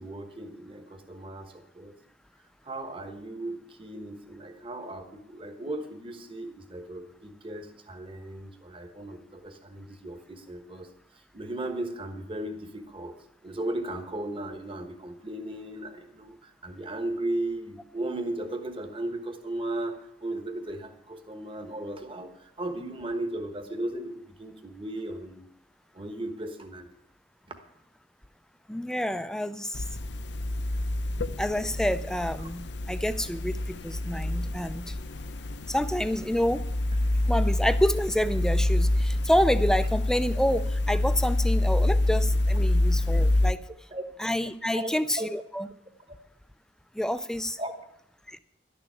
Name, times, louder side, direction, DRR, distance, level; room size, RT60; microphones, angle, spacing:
voice 1, 0.0-1.9 2.6-13.2 13.4-25.5 25.9-26.9 32.4-32.5 43.9-44.0 44.7-45.3 46.1-46.2 47.6-47.7, right 1 dB, 25° right, 6 dB, 1.2 m, -36 dB
voice 2, 28.7-29.8 31.4-32.6 32.9-34.9 35.7-36.6 37.3-43.6 44.2-45.7 47.0-47.6 48.3-48.4, equal, 5° left, 12 dB, 0.4 m, -28 dB
sound 1, 29.7-43.5, left 1 dB, 60° left, 0.7 m, -27 dB
12.0 x 6.9 x 9.9 m, 0.76 s
head